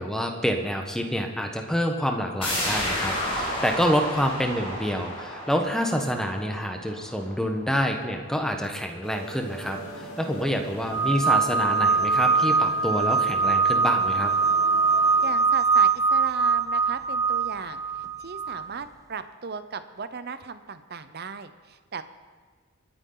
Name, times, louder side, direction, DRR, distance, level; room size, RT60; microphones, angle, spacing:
voice 1, 0.0-14.3, equal, 5° left, 4 dB, 1.2 m, -27 dB
sound 1, 2.4-7.9 8.2-8.3, left 1 dB, 25° left, 5.2 m, -32 dB
sound 2, 9.0-15.3, left 1 dB, 70° left, 4.5 m, -40 dB
sound 3, 10.9-18.7, right 4 dB, 15° right, 0.3 m, -22 dB
voice 2, 15.2-22.0, right 5 dB, 50° right, 11 dB, 0.8 m, -37 dB
28.0 x 9.8 x 4.0 m, 1.5 s
head